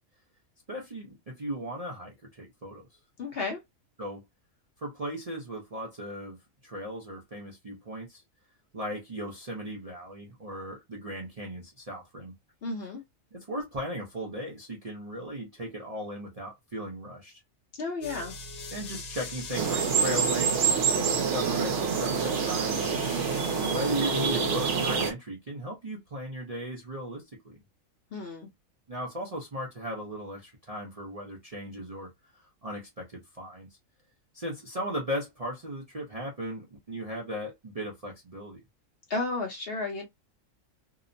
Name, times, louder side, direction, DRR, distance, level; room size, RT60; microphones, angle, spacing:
voice 1, 0.7-2.9 4.0-4.2 4.8-6.4 6.6-8.2 8.7-12.3 13.3-17.4 18.7-23.0 23.6-27.6 28.9-32.1 32.4-33.7 34.3-38.6, equal, 40° right, 0.5 m, -37 dB
voice 2, 3.2-3.6 12.6-13.0 17.8-18.4 28.1-28.5 39.1-40.0, left 3 dB, 50° left, 0.8 m, -32 dB
sound 1, 18.0-25.1, left 3 dB, 90° left, 1.2 m, -40 dB
sound 2, 19.5-25.1, right 6 dB, 65° right, 0.9 m, -27 dB
2.8 x 2.0 x 2.5 m
omnidirectional pair, 1.4 m